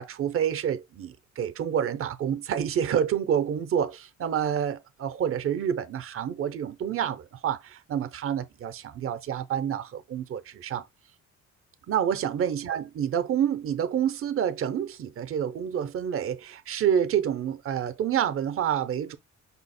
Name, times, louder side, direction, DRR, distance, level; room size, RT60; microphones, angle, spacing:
voice 1, 0.0-10.8 11.9-19.2, right 9 dB, 45° right, 0.6 m, -28 dB
5.6 x 2.0 x 4.0 m
cardioid pair, 90°, 30 cm